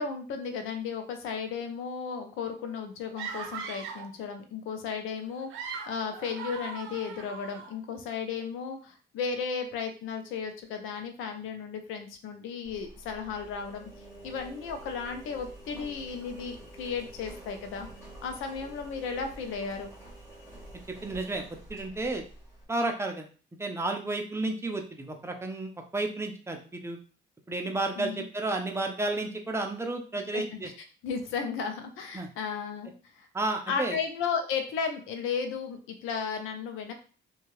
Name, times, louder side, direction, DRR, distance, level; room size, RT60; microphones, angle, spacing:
voice 1, 0.0-13.9 14.2-17.9 18.2-19.9 28.0-28.3 30.3-30.6 31.0-33.3 33.7-36.9, left 6 dB, 90° left, 6 dB, 0.6 m, -34 dB
sound 1, 3.2-4.1 5.3-7.7, right 6 dB, 90° right, 0.6 m, -39 dB
Engine, 12.6-22.6, right 1 dB, 15° left, 1.5 m, -48 dB
voice 2, 21.0-22.2 22.7-23.3 23.6-27.0 27.5-30.7 32.1-32.3 33.3-34.0, right 2 dB, 15° right, 3 dB, 0.6 m, -32 dB
2.7 x 2.3 x 3.0 m, 0.39 s
cardioid pair, 90°, 20 cm